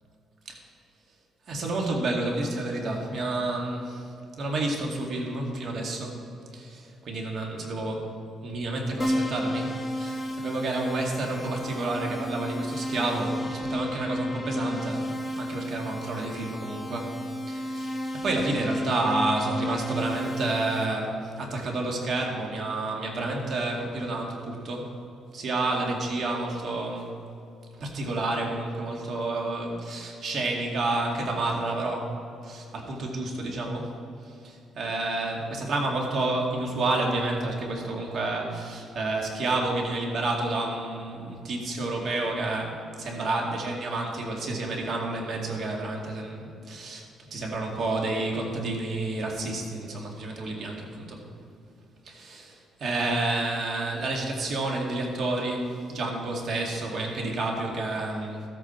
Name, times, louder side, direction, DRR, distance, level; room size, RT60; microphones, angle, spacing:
voice 1, 1.5-4.1 4.4-6.2 6.5-8.1 8.4-17.1 17.4-24.9 25.3-27.1 27.8-32.2 32.4-33.9 34.3-47.0 47.3-51.2 52.1-58.4, right 2 dB, 60° right, 0 dB, 2.2 m, -30 dB
Keyboard (musical), 9.0-20.9, equal, 15° left, 1.5 m, -32 dB
13.5 x 8.5 x 4.5 m, 2.8 s
cardioid pair, 105°, 0 cm